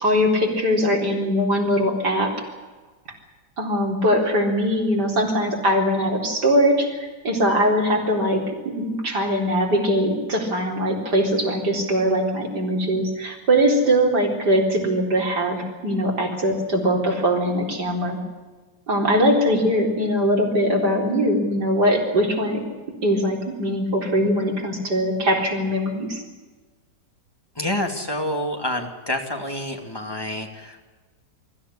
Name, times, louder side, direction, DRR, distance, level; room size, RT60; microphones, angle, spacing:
voice 1, 0.0-2.3 3.6-8.4 8.8-18.2 18.9-22.6 23.0-26.2, equal, 65° right, 0 dB, 4.6 m, -21 dB
voice 2, 27.5-30.8, left 1 dB, 15° left, 3 dB, 2.7 m, -28 dB
24.0 x 14.5 x 10.0 m, 1.3 s
omnidirectional pair, 1.9 m